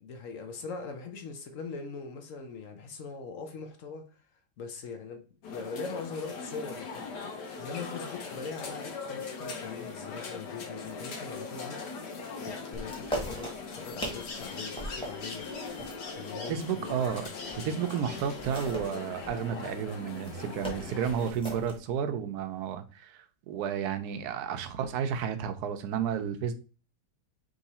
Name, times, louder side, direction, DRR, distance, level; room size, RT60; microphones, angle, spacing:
voice 1, 0.0-4.2 4.6-7.1 7.6-11.8 12.4-15.5 16.0-17.0 24.3-24.4, left 4 dB, 60° left, 0.9 m, -41 dB
sound 1, 5.4-21.3, left 4 dB, 75° left, 1.5 m, -40 dB
sound 2, 12.7-17.6 18.0-21.8, right 1 dB, 5° left, 1.1 m, -40 dB
voice 2, 16.3-17.3 17.6-26.5, right 8 dB, 70° right, 1.1 m, -32 dB
3.7 x 3.1 x 4.1 m
omnidirectional pair, 1.9 m